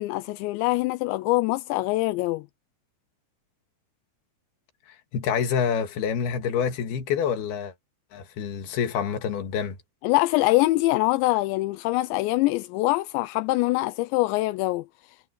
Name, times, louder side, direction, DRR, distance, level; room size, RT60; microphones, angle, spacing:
voice 1, 0.0-2.5 10.0-14.9, left 19 dB, 85° left, 2.9 m, -24 dB
voice 2, 5.1-7.7 8.1-9.8, left 7 dB, 65° left, 3.7 m, -27 dB
omnidirectional pair, 5.1 m